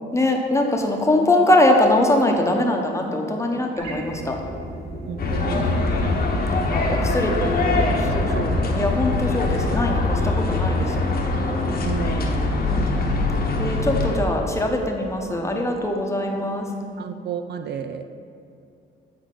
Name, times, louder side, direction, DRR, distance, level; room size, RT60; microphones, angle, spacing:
voice 1, 0.1-4.4 6.1-11.2 12.7-13.1 13.6-16.7, left 1 dB, 15° left, 1 dB, 0.9 m, -22 dB
sound 1, 3.7-12.0, right 1 dB, 90° right, 1.1 m, -36 dB
voice 2, 5.1-6.2 6.9-7.0 7.3-8.0 8.3-8.7 11.8-12.7 17.0-18.0, right 7 dB, 60° right, 8 dB, 0.4 m, -32 dB
sound 2, 5.2-14.2, left 2 dB, 50° left, 0.9 m, -23 dB
8.4 x 4.6 x 3.8 m, 2.5 s
cardioid pair, 90°, 20 cm